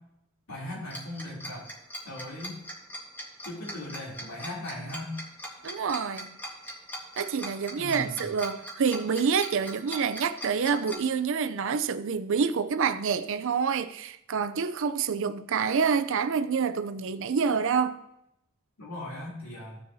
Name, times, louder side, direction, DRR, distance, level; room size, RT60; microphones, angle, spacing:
voice 1, 0.5-1.7 2.0-2.6 3.4-5.1 7.7-8.3 18.8-19.8, left 1 dB, 90° left, 3.1 m, -38 dB
Tick-tock, 0.9-11.0, equal, 10° left, 1.6 m, -39 dB
voice 2, 5.6-6.4 7.2-18.0, right 6 dB, 60° right, 0.5 m, -27 dB
15.5 x 6.7 x 2.7 m
head